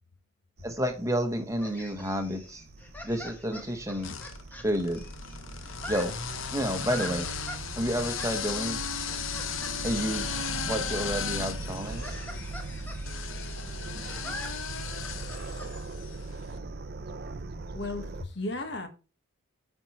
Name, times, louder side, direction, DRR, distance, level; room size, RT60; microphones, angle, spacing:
voice 1, 0.6-2.6 3.0-4.1 4.6-5.0 5.9-6.1 6.5-7.3 7.8-8.8 9.8-12.2, equal, 15° right, 1.1 m, -30 dB
sound 1, 0.6-18.2, right 3 dB, 50° right, 0.5 m, -40 dB
sound 2, 1.6-5.4 5.6-7.6 8.2-8.3 9.0-9.7 10.0-10.8 11.0-11.1 11.6-15.7, left 1 dB, 10° left, 1.0 m, -44 dB
sound 3, 2.6-3.3 4.0-16.3, left 7 dB, 70° left, 0.7 m, -37 dB
voice 2, 17.7-18.9, left 2 dB, 55° left, 1.3 m, -34 dB
8.9 x 4.5 x 4.3 m
head